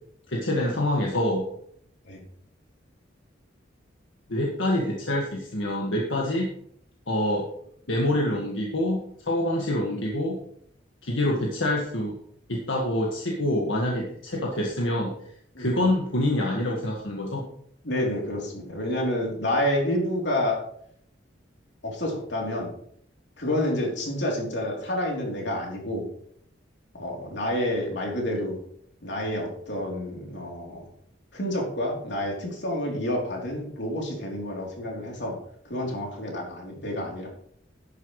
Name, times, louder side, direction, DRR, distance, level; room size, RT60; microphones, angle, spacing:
voice 1, 0.3-1.5 4.3-6.5 7.1-7.5 7.9-10.4 11.0-12.2 12.5-15.1 15.6-17.5, left 1 dB, 85° left, -2 dB, 1.8 m, -26 dB
voice 2, 17.8-20.6 21.8-22.7 23.4-26.0 27.0-28.6 29.0-30.8 31.3-35.4 35.6-37.3, left 1 dB, 65° left, -1 dB, 3.4 m, -29 dB
11.5 x 10.0 x 3.2 m, 0.66 s
head